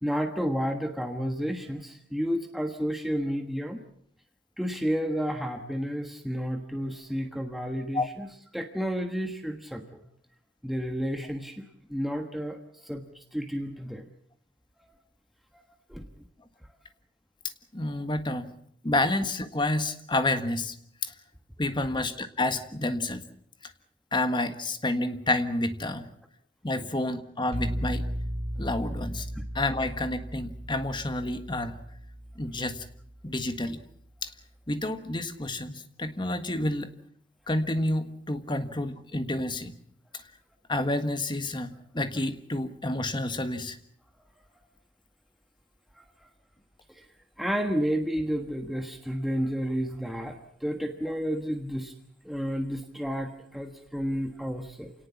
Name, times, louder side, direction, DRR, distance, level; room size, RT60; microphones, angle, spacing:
voice 1, 0.0-3.8 4.6-8.3 8.5-10.0 10.6-11.6 11.9-14.1 15.5-15.6 15.9-16.1 26.8-26.9 29.3-29.4 46.0-46.1 46.9-47.1 47.4-51.9 52.2-54.9, equal, ahead, 4 dB, 1.4 m, -31 dB
voice 2, 17.7-18.5 18.8-20.8 21.0-21.1 21.6-23.2 24.1-26.1 26.6-28.1 28.6-29.3 29.5-31.8 32.4-32.8 33.2-33.8 34.2-34.3 34.7-36.9 37.5-39.8 40.7-43.8, left 2 dB, 25° left, 9 dB, 1.6 m, -29 dB
sound 1, 27.5-33.3, equal, 35° right, 2.2 m, -36 dB
28.0 x 18.5 x 7.2 m, 0.66 s
head